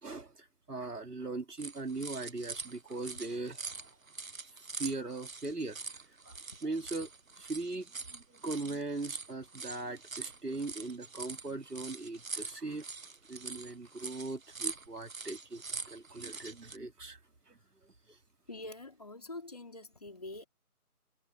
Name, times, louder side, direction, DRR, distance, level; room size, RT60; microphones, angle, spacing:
voice 1, 0.0-3.7 4.7-5.8 6.3-6.4 6.6-7.1 7.4-12.8 13.3-15.6 15.9-17.2 17.5-17.6, right 3 dB, 90° right, 3.6 m, -39 dB
sound 1, 1.6-16.8, right 4 dB, 60° right, 1.3 m, -44 dB
voice 2, 18.5-20.5, left 2 dB, 25° left, 3.1 m, -45 dB
figure-of-eight pair, 180°, 45 cm